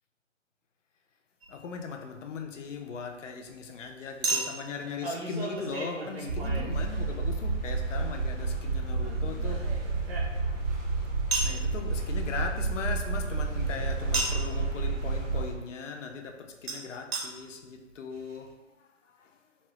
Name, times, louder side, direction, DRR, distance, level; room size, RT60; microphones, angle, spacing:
Chink clink, 1.4-1.6 4.2-7.4 9.0-10.7 11.3-11.6 14.1-14.5 16.7-16.8 17.1-17.2 17.9-18.0 18.2-18.3, right 3 dB, 55° right, 0.6 m, -34 dB
voice 1, 1.5-9.7 11.4-18.5 19.2-19.3, left 5 dB, 75° left, 0.5 m, -39 dB
sound 1, 6.3-15.5, right 4 dB, 90° right, 0.8 m, -30 dB
3.0 x 2.1 x 2.9 m
hypercardioid pair, 155°, 38 cm